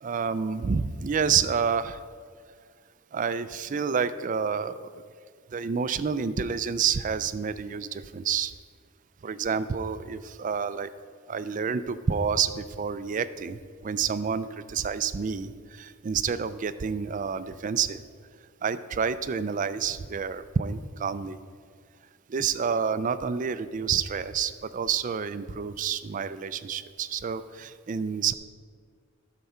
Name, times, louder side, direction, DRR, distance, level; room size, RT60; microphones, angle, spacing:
voice 1, 0.0-2.0 3.1-4.9 5.5-8.5 9.2-10.9 11.3-18.0 18.6-21.4 22.3-28.3, right 6 dB, 40° right, 14 dB, 0.4 m, -29 dB
13.0 x 6.8 x 4.3 m, 2.1 s
head